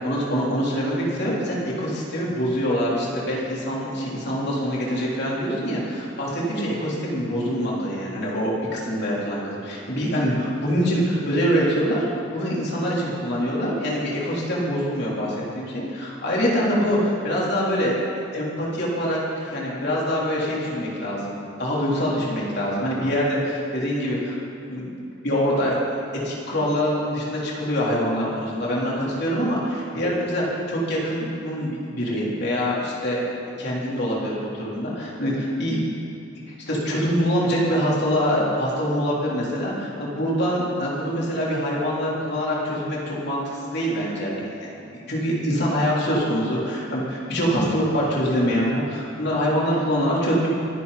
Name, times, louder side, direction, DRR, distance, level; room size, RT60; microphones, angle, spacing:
voice 1, 0.0-17.9 18.3-24.4 24.7-24.9 25.2-25.8 26.1-33.2 33.6-35.8 36.5-44.5 44.8-50.5, equal, 55° left, -5 dB, 3.8 m, -24 dB
25.0 x 11.0 x 4.3 m, 2.6 s
head